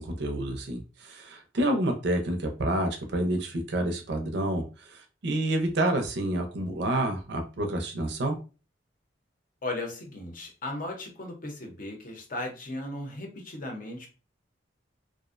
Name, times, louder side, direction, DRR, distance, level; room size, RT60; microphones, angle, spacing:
voice 1, 0.0-8.4, right 1 dB, 60° right, 5 dB, 0.5 m, -29 dB
voice 2, 9.6-14.1, left 2 dB, 45° left, 2 dB, 0.6 m, -36 dB
2.4 x 2.0 x 2.4 m, 0.33 s
head